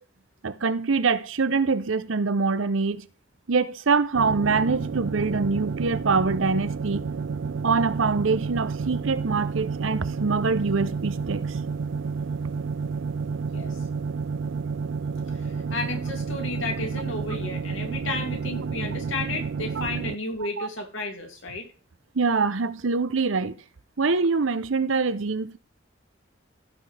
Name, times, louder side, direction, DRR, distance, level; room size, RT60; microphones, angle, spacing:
voice 1, 0.4-3.0 3.5-7.1 7.6-11.4 20.6-20.7 22.1-23.5 24.0-25.6, right 4 dB, 85° right, 0.8 m, -24 dB
sound 1, 4.1-20.2, right 5 dB, 70° right, 0.4 m, -30 dB
voice 2, 15.3-21.7, left 2 dB, 85° left, 2.6 m, -33 dB
15.5 x 6.1 x 3.4 m
head